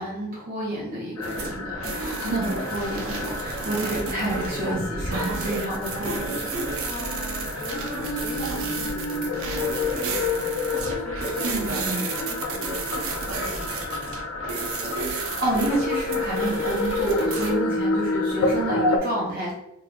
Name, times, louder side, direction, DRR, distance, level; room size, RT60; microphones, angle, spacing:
voice 1, 0.0-6.5 11.4-12.0 15.1-19.5, right 1 dB, 40° right, -5 dB, 0.9 m, -29 dB
sound 1, 1.2-19.0, left 3 dB, 75° left, 0.4 m, -29 dB
sound 2, 1.2-17.5, right 3 dB, 60° right, 0.5 m, -32 dB
voice 2, 1.8-2.3 6.8-15.0, left 2 dB, 30° left, 0 dB, 0.7 m, -41 dB
3.0 x 2.3 x 3.8 m, 0.85 s
head